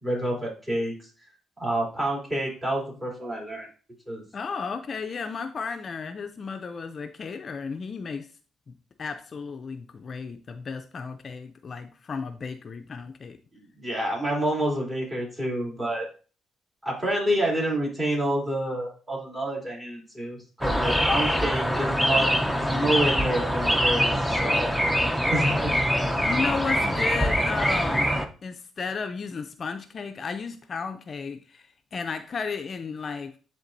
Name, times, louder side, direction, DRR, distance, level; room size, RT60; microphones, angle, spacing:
voice 1, 0.0-0.9 1.6-3.7 4.1-4.2 13.5-16.1 16.8-24.7 25.3-25.7, right 1 dB, 20° right, -3 dB, 3.1 m, -28 dB
voice 2, 4.3-8.3 8.7-13.4 20.7-21.0 22.2-22.3 26.2-28.1 28.4-33.4, left 5 dB, 45° left, 7 dB, 0.5 m, -34 dB
sound 1, 20.6-28.3, equal, 5° right, 0.7 m, -24 dB
10.0 x 3.6 x 2.6 m, 0.38 s
cardioid pair, 90°, 0 cm